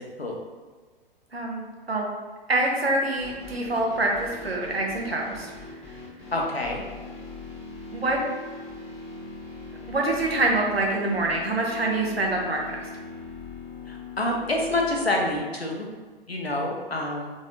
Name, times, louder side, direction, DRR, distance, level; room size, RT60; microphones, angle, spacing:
voice 1, 1.3-1.6 1.9-2.1 2.5-5.5 7.9-8.2 9.9-12.9, right 2 dB, 85° right, -1 dB, 0.9 m, -25 dB
sound 1, 3.2-15.4, left 3 dB, 20° left, 1.3 m, -41 dB
voice 2, 6.3-6.8 13.9-15.9 16.3-17.3, left 1 dB, 90° left, -1 dB, 0.9 m, -27 dB
3.7 x 3.7 x 2.6 m, 1.4 s
figure-of-eight pair, 105°, 30 cm